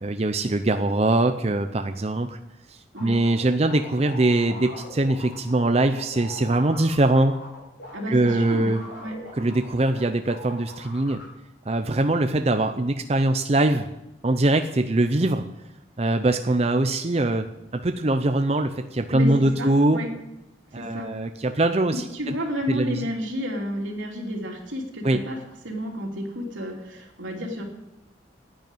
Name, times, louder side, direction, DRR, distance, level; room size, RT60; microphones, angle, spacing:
voice 1, 0.0-2.4 2.7-7.3 8.1-8.8 9.3-11.2 11.7-13.9 14.2-15.4 16.0-17.5 17.7-20.0 20.7-22.3 22.7-23.1 25.0-25.2, right 2 dB, 35° right, 7 dB, 0.6 m, -22 dB
sound 1, 3.0-10.0 10.3-11.2, left 1 dB, 80° left, 5.6 m, -41 dB
voice 2, 7.9-8.7 9.0-9.1 19.1-19.3 19.6-20.1 20.7-21.1 22.1-25.4 25.6-27.6, equal, 85° right, 0 dB, 3.2 m, -31 dB
10.5 x 9.4 x 9.1 m, 0.90 s
head